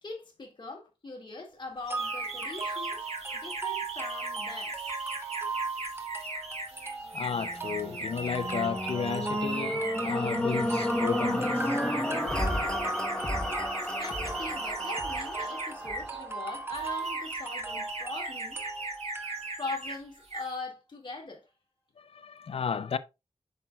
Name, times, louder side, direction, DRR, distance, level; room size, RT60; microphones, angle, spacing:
voice 1, 0.0-3.1 3.3-4.8 14.0-18.6 19.6-21.5, left 3 dB, 45° left, 2.0 m, -41 dB
sound 1, 1.9-19.8, right 4 dB, 20° right, 1.1 m, -38 dB
sound 2, 1.9-16.2 16.8-20.0 20.2-20.5, right 2 dB, 70° right, 2.4 m, -38 dB
voice 2, 7.1-11.8 22.0-23.0, left 6 dB, 60° left, 0.5 m, -33 dB
sound 3, 7.2-17.5 18.1-18.2, left 1 dB, 10° left, 1.1 m, -32 dB
8.1 x 5.9 x 2.3 m
wide cardioid pair, 115°, 11 cm